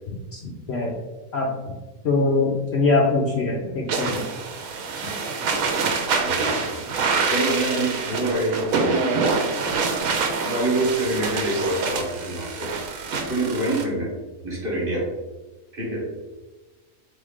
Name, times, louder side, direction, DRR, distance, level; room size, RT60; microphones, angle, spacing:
voice 1, 0.1-1.0 1.3-1.7 2.0-4.2, left 3 dB, 65° left, -1 dB, 0.7 m, -23 dB
sound 1, 3.9-13.8, right 4 dB, 75° right, 1.0 m, -26 dB
voice 2, 6.1-6.7 7.3-9.1 10.4-12.7 13.3-14.1 14.4-15.1 15.7-16.0, right 1 dB, 40° right, -3 dB, 1.2 m, -26 dB
3.7 x 3.2 x 3.5 m, 1.2 s
omnidirectional pair, 1.5 m